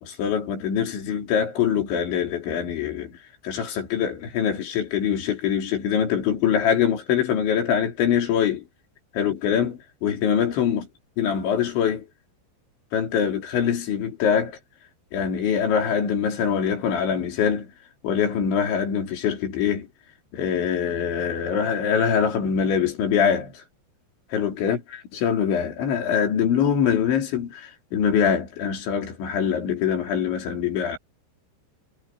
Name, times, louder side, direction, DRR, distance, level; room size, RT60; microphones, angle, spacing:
voice 1, 0.0-3.2 3.4-8.6 9.1-10.9 11.2-12.1 12.9-14.6 15.1-17.7 18.0-19.9 20.3-23.6 24.3-24.8 25.1-31.0, left 8 dB, 80° left, 5.9 m, -23 dB
omnidirectional pair, 5.2 m